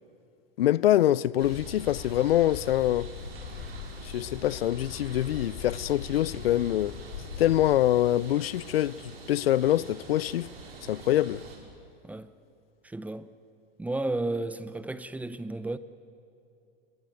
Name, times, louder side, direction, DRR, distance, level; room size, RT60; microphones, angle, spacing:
voice 1, 0.6-3.1 4.0-6.9 7.4-10.5 10.9-11.4, left 13 dB, 85° left, 0.5 m, -25 dB
sound 1, 1.4-11.6, right 4 dB, 85° right, 6.1 m, -45 dB
sound 2, 1.6-7.8, left 7 dB, 55° left, 4.5 m, -41 dB
voice 2, 12.8-13.3 13.8-15.8, right 2 dB, 5° right, 0.7 m, -33 dB
26.5 x 22.0 x 9.2 m
hypercardioid pair, 125°, 29 cm